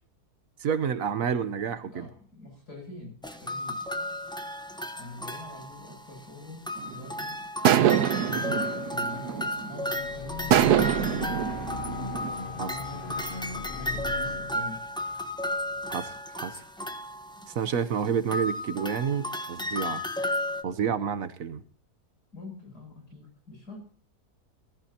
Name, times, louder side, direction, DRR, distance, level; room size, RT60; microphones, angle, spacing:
voice 1, 0.6-2.1 12.6-12.7 15.9-16.6 17.5-20.0 20.6-21.6, right 7 dB, 60° right, 1.3 m, -29 dB
voice 2, 1.6-3.1 3.4-3.8 5.0-6.6 6.9-7.4 8.2-11.4 12.5-13.3 13.7-14.8 22.3-23.8, left 2 dB, 75° left, 8.7 m, -44 dB
sound 1, 3.2-6.3 6.7-20.6, left 1 dB, 5° left, 0.8 m, -34 dB
sound 2, 6.8-7.1 7.7-9.8 10.5-12.3, right 10 dB, 90° right, 1.4 m, -24 dB
sound 3, 9.8-16.1, left 3 dB, 40° left, 1.1 m, -40 dB
20.0 x 14.5 x 2.8 m
omnidirectional pair, 1.7 m